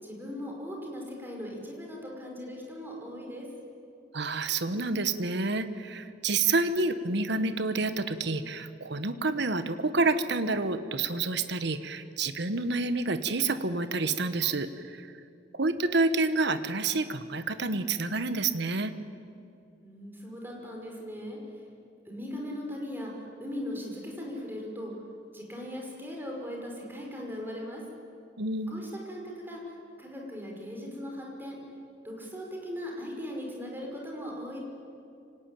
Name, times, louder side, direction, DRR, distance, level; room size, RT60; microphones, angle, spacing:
voice 1, 0.0-3.5 19.8-21.6 22.0-24.9 25.3-27.8 28.7-31.6 32.0-34.6, equal, 10° right, -1 dB, 5.6 m, -39 dB
voice 2, 4.1-15.1 15.5-18.9 28.4-28.9, right 3 dB, 65° right, 10 dB, 1.2 m, -28 dB
26.0 x 18.5 x 9.2 m, 2.5 s
head